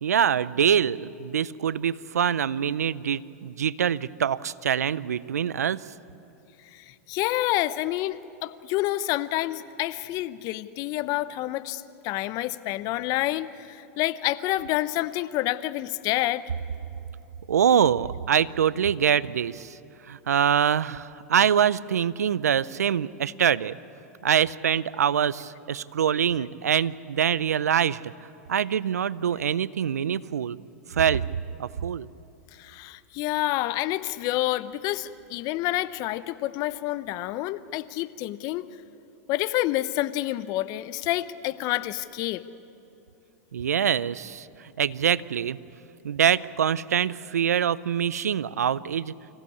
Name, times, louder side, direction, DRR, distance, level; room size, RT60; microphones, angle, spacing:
voice 1, 0.0-5.8 17.5-19.7 20.1-23.8 24.2-28.1 28.5-30.6 30.9-31.2 31.6-32.1 43.5-44.5 44.8-45.6 46.0-49.1, right 8 dB, 85° right, 19 dB, 0.5 m, -24 dB
voice 2, 6.7-16.4 32.6-38.7 39.3-42.4, left 16 dB, 45° left, 15 dB, 0.8 m, -28 dB
25.0 x 16.0 x 8.5 m, 2.8 s
hypercardioid pair, 105°, 8 cm